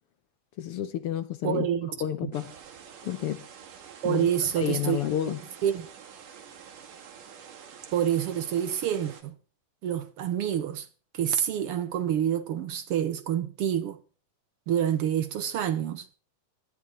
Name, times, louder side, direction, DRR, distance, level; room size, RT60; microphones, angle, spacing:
voice 1, 0.6-1.7 2.0-2.5 3.0-3.4 4.0-4.3 4.6-5.4, left 11 dB, 70° left, 1.4 m, -30 dB
voice 2, 1.4-1.9 2.2-2.3 4.0-5.0 5.6-5.9 7.9-9.3 9.8-10.9 11.1-14.0 14.7-16.1, right 9 dB, 65° right, 1.4 m, -27 dB
sound 1, 2.3-9.2, right 7 dB, 85° right, 3.7 m, -48 dB
19.5 x 13.0 x 4.3 m
omnidirectional pair, 3.6 m